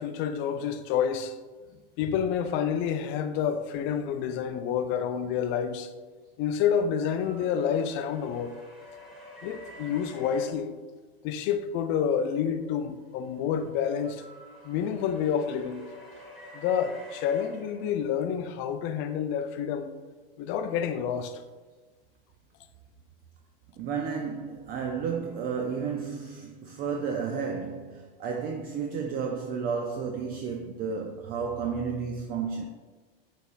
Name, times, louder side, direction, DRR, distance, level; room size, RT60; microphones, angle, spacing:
voice 1, 0.0-1.3 2.0-5.9 6.4-8.5 9.4-10.8 11.2-14.2 14.6-15.8 16.5-20.0 20.4-21.4, left 8 dB, 40° left, 0.4 m, -28 dB
sound 1, 7.2-10.5 12.9-18.4, left 2 dB, ahead, 1.5 m, -48 dB
voice 2, 23.8-32.7, right 6 dB, 30° right, 0.4 m, -32 dB
5.8 x 3.4 x 2.4 m
hypercardioid pair, 110°, 29 cm